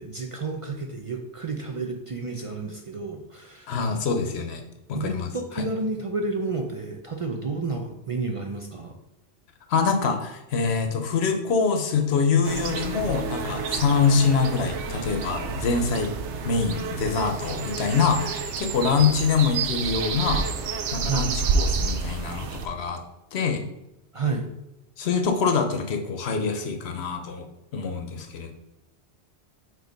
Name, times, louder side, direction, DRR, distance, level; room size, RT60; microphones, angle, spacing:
voice 1, 0.0-4.0 4.9-9.0 21.0-21.3 24.1-24.5, right 3 dB, 50° right, 2 dB, 0.4 m, -31 dB
voice 2, 3.7-4.6 4.9-5.3 5.5-5.7 9.7-16.1 16.4-20.5 20.9-23.0 23.3-23.6 25.0-27.5 27.7-28.5, left 5 dB, 70° left, 5 dB, 1.0 m, -25 dB
spring bees chickens dogs walking breeze water, 12.4-22.7, right 5 dB, 90° right, 0.9 m, -29 dB
4.6 x 4.0 x 5.2 m, 0.89 s
omnidirectional pair, 1.2 m